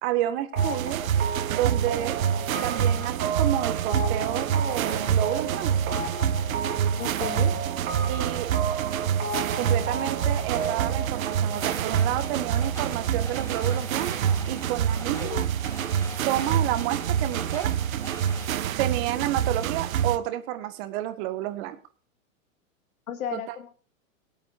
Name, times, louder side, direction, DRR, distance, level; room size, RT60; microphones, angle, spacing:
voice 1, 0.0-1.0 1.5-2.2 2.6-6.0 8.1-8.5 9.5-15.5 16.3-17.7 18.8-21.8 23.3-23.6, right 13 dB, 45° right, 9 dB, 1.9 m, -30 dB
sound 1, 0.5-14.0, right 4 dB, 30° right, 3.5 m, -34 dB
sound 2, 0.6-20.2, right 9 dB, 75° right, 1.1 m, -27 dB
voice 2, 7.0-7.5 15.2-15.5 23.1-23.7, left 9 dB, 80° left, 7 dB, 2.1 m, -34 dB
sound 3, 11.5-18.5, left 1 dB, 5° left, 5.2 m, -43 dB
22.5 x 8.5 x 2.7 m, 0.40 s
hypercardioid pair, 125°, 41 cm